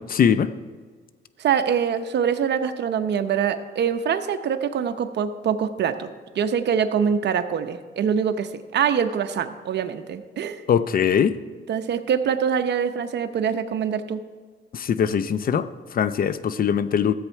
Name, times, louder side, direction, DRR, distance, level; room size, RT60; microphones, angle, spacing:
voice 1, 0.1-0.5 10.7-11.4 14.7-17.1, left 8 dB, 45° left, 13 dB, 0.6 m, -21 dB
voice 2, 1.4-6.1 6.3-10.6 11.7-14.2, right 7 dB, 60° right, 8 dB, 0.8 m, -24 dB
14.0 x 8.0 x 4.6 m, 1.5 s
cardioid pair, 90°, 20 cm